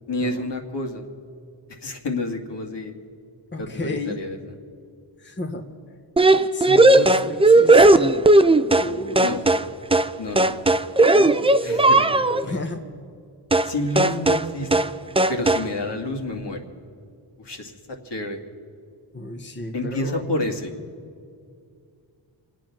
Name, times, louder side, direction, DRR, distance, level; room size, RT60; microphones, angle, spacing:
voice 1, 0.1-1.0 1.8-2.9 3.6-4.4 9.2-9.4 10.2-10.7 11.1-11.3 11.6-12.6 13.6-14.9 15.3-16.6 17.4-18.4 19.7-20.7, left 2 dB, 60° left, 2 dB, 2.2 m, -29 dB
voice 2, 3.5-4.2 5.2-5.6 6.5-8.1 8.8-9.4 12.4-12.8 19.1-20.2, left 2 dB, 25° left, 3 dB, 1.2 m, -32 dB
sound 1, 6.2-8.9 9.2-9.7 9.9-10.1 10.4-12.4 13.5-13.7 14.0-14.5 14.7-14.9 15.2-15.7, right 2 dB, 10° right, 0.5 m, -16 dB
26.0 x 9.2 x 6.0 m, 2.3 s
cardioid pair, 80°, 48 cm